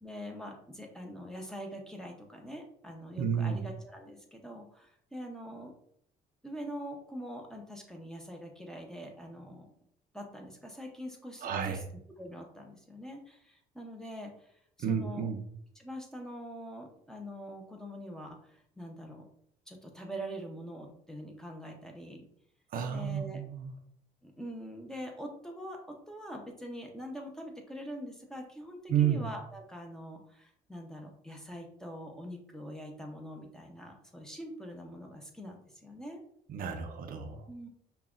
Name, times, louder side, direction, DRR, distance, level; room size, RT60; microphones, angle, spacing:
voice 1, 0.0-5.7 6.4-9.7 10.1-11.8 12.2-14.3 14.9-15.3 15.8-19.2 19.7-22.2 22.9-23.4 24.2-25.8 26.1-36.2 37.5-37.7, equal, 5° left, 1 dB, 0.7 m, -44 dB
voice 2, 3.2-3.7 11.4-11.8 14.8-15.5 22.7-23.7 28.9-29.3 36.5-37.5, right 8 dB, 55° right, 5 dB, 0.5 m, -31 dB
5.4 x 2.3 x 2.5 m, 0.67 s
cardioid pair, 110°, 17 cm